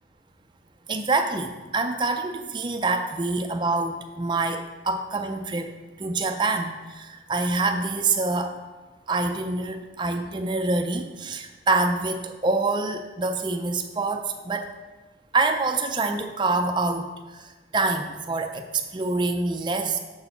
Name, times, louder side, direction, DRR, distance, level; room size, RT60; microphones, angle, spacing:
voice 1, 0.9-5.7 6.0-8.6 9.1-14.7 15.3-20.0, right 3 dB, 25° right, 5 dB, 0.4 m, -26 dB
6.8 x 4.2 x 5.5 m, 1.2 s
head